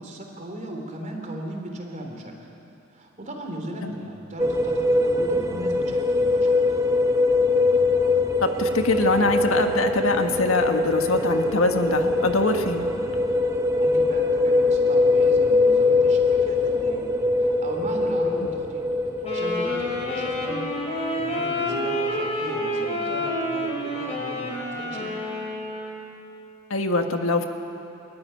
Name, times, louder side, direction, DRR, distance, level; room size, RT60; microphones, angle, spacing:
voice 1, 0.0-2.3 2.9-6.6 13.8-17.1 17.4-18.8 19.2-20.6 20.9-25.2, right 1 dB, 35° right, 2 dB, 3.5 m, -37 dB
sound 1, 4.4-21.6, left 2 dB, 15° right, 1.1 m, -22 dB
voice 2, 8.4-12.9 26.7-27.5, left 2 dB, 65° left, 5 dB, 1.5 m, -23 dB
Wind instrument woodwind instrument, 19.2-26.1, equal, 30° left, 4.8 m, -29 dB
26.0 x 14.0 x 10.0 m, 2.7 s
head